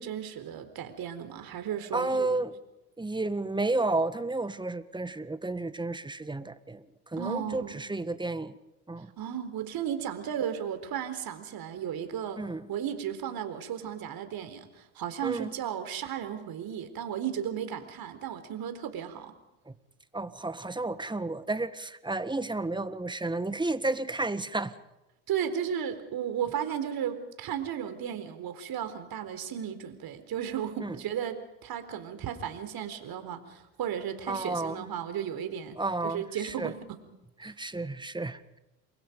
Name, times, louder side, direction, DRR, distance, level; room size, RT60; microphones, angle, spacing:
voice 1, 0.0-2.4 7.2-7.8 9.2-12.4 12.7-19.3 25.3-35.8 36.0-37.0 37.4-37.5, right 9 dB, 55° right, 9 dB, 4.2 m, -34 dB
voice 2, 1.9-2.5 3.0-6.8 7.1-8.6 8.9-9.1 12.4-12.7 15.2-15.5 19.7-19.8 20.1-24.7 30.8-30.9 34.3-34.8 35.8-36.7 37.4-38.6, right 2 dB, 10° right, 13 dB, 1.6 m, -32 dB
30.0 x 23.5 x 5.3 m, 0.96 s
hypercardioid pair, 75°, 44 cm